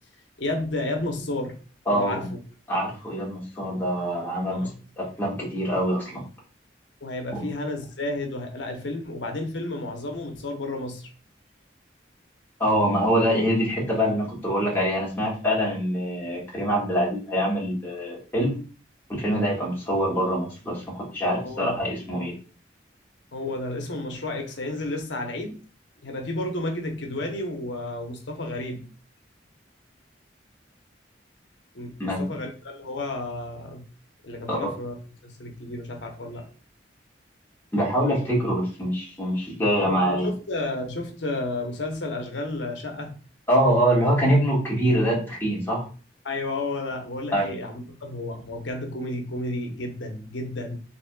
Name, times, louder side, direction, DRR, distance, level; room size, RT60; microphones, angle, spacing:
voice 1, 0.4-1.6 1.9-2.4 4.5-4.7 7.0-11.1 21.2-21.8 23.3-25.6 26.0-28.9 31.7-33.8 34.2-35.0 35.2-36.5 39.8-43.1 46.2-50.8, left 2 dB, 80° left, 3 dB, 0.9 m, -32 dB
voice 2, 1.8-2.3 2.7-4.7 5.0-6.2 7.3-7.4 12.6-18.6 19.1-22.3 32.0-32.2 34.5-34.6 37.7-40.3 43.5-45.8 47.3-47.5, equal, 10° left, -5 dB, 1.7 m, -24 dB
4.1 x 3.6 x 2.3 m, 0.37 s
head